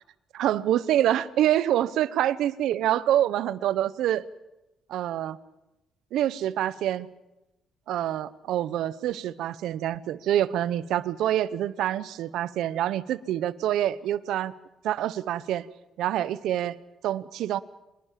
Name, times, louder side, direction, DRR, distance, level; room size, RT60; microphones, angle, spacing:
voice 1, 0.3-4.2 4.9-5.4 6.1-7.1 7.9-14.5 14.8-15.7 16.0-16.7 17.0-17.6, right 12 dB, 85° right, 16 dB, 1.0 m, -26 dB
25.5 x 21.0 x 7.6 m, 0.96 s
cardioid pair, 90°, 0 cm